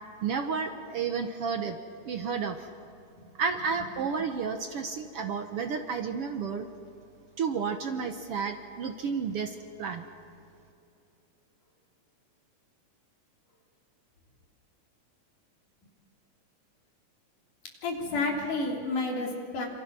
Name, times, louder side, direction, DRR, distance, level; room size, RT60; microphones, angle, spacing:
voice 1, 0.2-1.8 2.0-2.7 3.4-6.7 7.4-10.0, right 5 dB, 60° right, 6 dB, 1.7 m, -31 dB
voice 2, 17.8-19.7, left 3 dB, 80° left, 0 dB, 4.9 m, -30 dB
27.5 x 26.5 x 6.2 m, 2.7 s
omnidirectional pair, 3.6 m